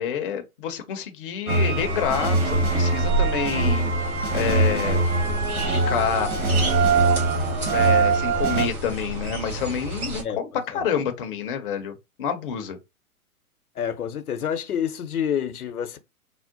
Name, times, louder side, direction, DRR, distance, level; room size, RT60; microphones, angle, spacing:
voice 1, 0.0-3.9 4.3-5.0 5.6-6.3 7.7-12.8, left 7 dB, 40° left, 0.5 m, -28 dB
sound 1, 1.5-8.7, right 3 dB, 35° right, 1.1 m, -22 dB
sound 2, 1.7-10.2, right 2 dB, 80° right, 1.7 m, -30 dB
voice 2, 13.8-16.0, left 8 dB, 80° left, 0.7 m, -28 dB
3.5 x 2.1 x 2.6 m
figure-of-eight pair, 120°, 44 cm